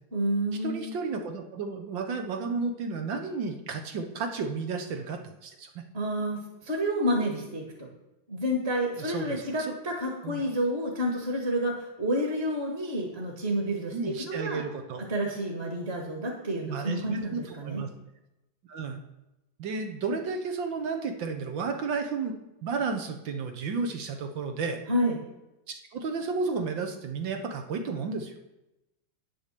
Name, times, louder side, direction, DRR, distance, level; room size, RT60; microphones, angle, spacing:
voice 1, 0.1-0.9 5.9-7.9 8.3-14.6 15.1-17.8 24.9-25.2, equal, 35° right, 0 dB, 1.9 m, -29 dB
voice 2, 0.6-5.8 9.0-9.7 10.2-10.4 13.9-15.0 16.7-17.9 18.7-19.0 19.6-24.8 25.7-28.3, right 4 dB, 70° right, 5 dB, 1.9 m, -32 dB
9.6 x 7.0 x 6.8 m, 0.95 s
omnidirectional pair, 2.1 m